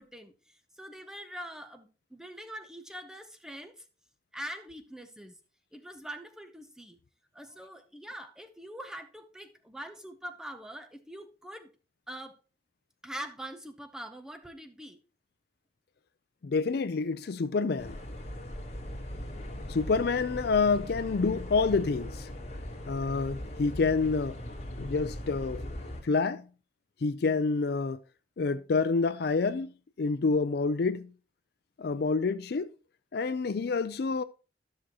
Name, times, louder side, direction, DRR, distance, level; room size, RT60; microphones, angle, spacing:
voice 1, 0.0-3.9 4.3-5.4 5.7-7.0 7.3-11.7 12.1-12.4 13.0-15.0, equal, 5° right, 0.6 m, -43 dB
voice 2, 16.4-17.9 19.7-22.3 22.9-24.4 24.8-25.6 26.0-26.4 27.0-28.0 28.4-29.7 30.0-31.1 31.8-32.7 33.1-34.2, left 4 dB, 55° left, 0.4 m, -28 dB
sound 1, 17.8-26.0, left 1 dB, 35° left, 1.8 m, -39 dB
12.5 x 6.1 x 2.9 m
head